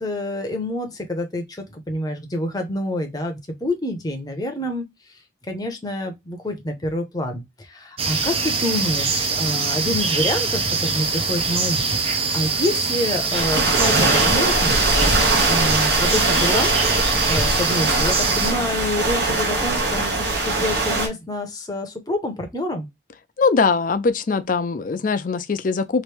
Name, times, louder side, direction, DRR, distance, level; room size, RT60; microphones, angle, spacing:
voice 1, 0.0-4.8 5.5-11.8 12.1-14.8 15.4-16.7 17.1-22.9, left 1 dB, 20° left, 0.7 m, -27 dB
sound 1, 8.0-18.5, right 4 dB, 30° right, 0.5 m, -23 dB
sound 2, 13.3-21.1, right 2 dB, 60° right, 1.1 m, -21 dB
voice 2, 23.4-26.0, left 4 dB, 45° left, 0.4 m, -21 dB
3.0 x 2.6 x 3.2 m
head